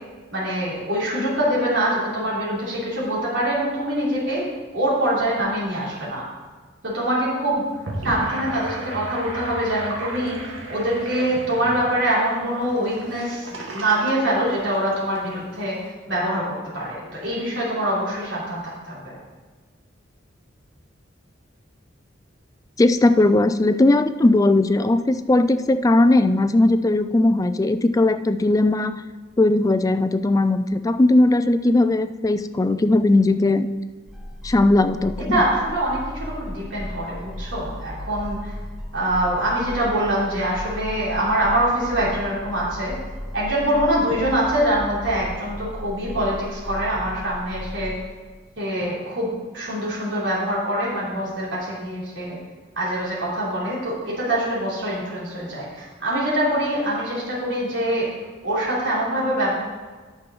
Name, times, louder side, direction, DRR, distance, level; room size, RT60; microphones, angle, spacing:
voice 1, 0.3-4.4 4.7-6.3 6.8-7.6 8.0-15.8 16.1-19.1 35.3-38.5 38.9-42.9 43.3-47.9 48.6-49.3 49.5-52.4 52.8-58.1 58.4-59.6, right 1 dB, 70° right, -7 dB, 3.4 m, -24 dB
Gurgling / Sink (filling or washing), 7.7-15.2, right 2 dB, 85° right, 1.8 m, -35 dB
voice 2, 22.8-29.0 29.4-33.7 34.4-35.4, left 2 dB, 20° left, 12 dB, 0.3 m, -18 dB
sound 1, 34.1-48.0, equal, ahead, 1.1 m, -36 dB
9.8 x 6.0 x 5.4 m, 1.4 s
head